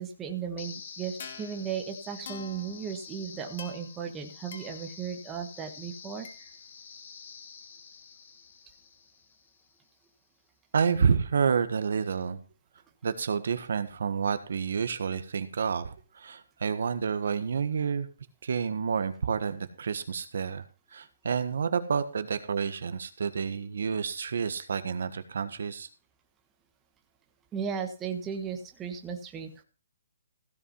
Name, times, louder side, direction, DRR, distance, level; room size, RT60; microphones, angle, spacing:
voice 1, 0.0-6.5 27.5-29.6, right 7 dB, 15° right, 4 dB, 1.3 m, -36 dB
sound 1, 0.6-9.6, left 6 dB, 50° left, 2.3 m, -46 dB
voice 2, 10.7-12.4 13.0-18.1 18.4-20.6 20.9-25.9, right 6 dB, 65° right, 11 dB, 1.5 m, -29 dB
16.0 x 5.7 x 5.6 m, 0.35 s
hypercardioid pair, 165°, 0 cm